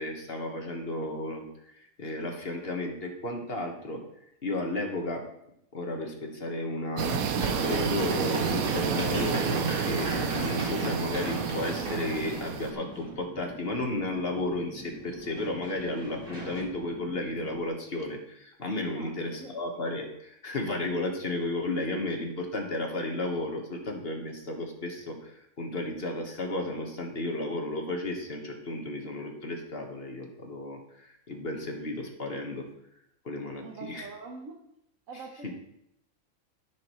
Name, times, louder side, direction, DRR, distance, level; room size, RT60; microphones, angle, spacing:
voice 1, 0.0-4.0 4.4-5.2 5.7-32.7 33.2-34.1, left 2 dB, 45° left, 2 dB, 1.6 m, -33 dB
sound 1, 7.0-12.7, right 8 dB, 85° right, 1.2 m, -30 dB
Run, 7.4-13.2 15.1-16.6, right 1 dB, 40° right, 2.3 m, -35 dB
sound 2, 10.2-17.7, left 1 dB, 15° left, 0.4 m, -47 dB
voice 2, 18.9-19.5 33.6-34.6 35.1-35.5, right 4 dB, 70° right, 1 dB, 1.3 m, -44 dB
14.0 x 6.2 x 3.1 m, 0.78 s
omnidirectional pair, 1.5 m